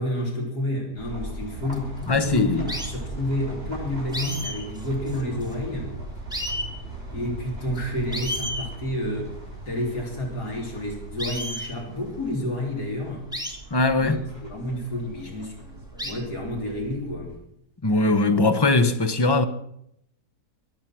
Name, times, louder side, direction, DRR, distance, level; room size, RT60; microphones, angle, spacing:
voice 1, 0.0-5.9 7.1-9.4 9.7-13.3 14.0-15.7 16.0-17.3, left 1 dB, 80° left, 4.0 m, -30 dB
sound 1, 1.0-17.4, right 2 dB, 35° right, 7.9 m, -39 dB
sound 2, 1.7-2.0 2.7-2.9 4.1-5.7 6.0-6.1 6.3-6.7 7.7-7.8 8.1-8.7 11.2-11.7 13.3-13.6 14.7-14.8 16.0-16.1, equal, ahead, 2.1 m, -32 dB
voice 2, 2.1-2.7 13.7-14.2 17.8-19.4, left 2 dB, 20° left, 0.7 m, -20 dB
22.5 x 8.7 x 6.1 m
omnidirectional pair, 1.7 m